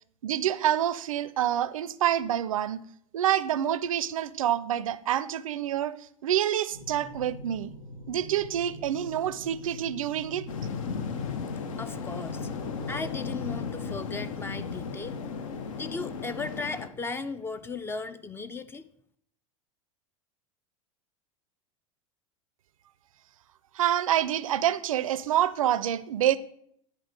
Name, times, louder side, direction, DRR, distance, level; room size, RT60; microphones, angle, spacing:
voice 1, 0.2-2.8 3.1-7.7 8.1-10.5 23.7-26.4, right 11 dB, 75° right, 0.4 m, -27 dB
sound 1, 6.7-16.6, equal, 85° left, 1.2 m, -44 dB
sound 2, 10.5-16.9, left 6 dB, 70° left, 0.7 m, -35 dB
voice 2, 11.8-12.5 12.9-15.2 15.7-18.8, left 4 dB, 15° left, 0.4 m, -36 dB
9.8 x 3.3 x 5.0 m
hypercardioid pair, 90°, 18 cm